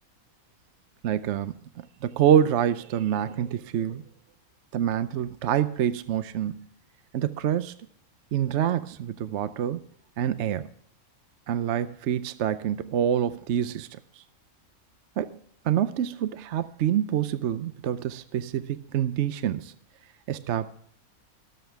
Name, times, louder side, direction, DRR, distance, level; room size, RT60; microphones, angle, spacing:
voice 1, 1.0-1.5 2.0-4.0 4.7-6.6 7.1-7.8 8.3-9.9 10.2-10.7 11.5-13.9 15.2-15.4 15.6-19.7 20.3-20.7, right 10 dB, 65° right, 0.8 m, -26 dB
23.5 x 8.1 x 3.4 m
omnidirectional pair, 1.5 m